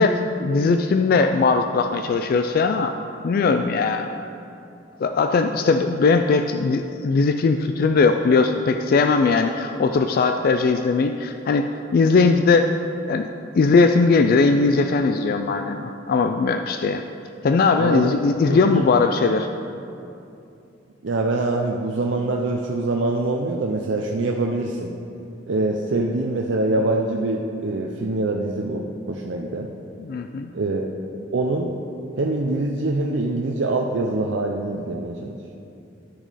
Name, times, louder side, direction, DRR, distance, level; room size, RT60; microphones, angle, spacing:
voice 1, 0.0-2.9 3.2-4.1 5.0-11.7 11.9-12.7 13.1-13.3 13.5-17.0 17.4-19.5 30.0-30.5, left 4 dB, 50° left, 7 dB, 0.3 m, -19 dB
voice 2, 17.8-18.2 18.5-18.9 21.0-24.9 25.5-29.7 30.5-30.8 31.3-31.7 32.2-35.4, right 2 dB, 75° right, 1 dB, 0.6 m, -24 dB
12.5 x 6.0 x 4.1 m, 2.7 s
head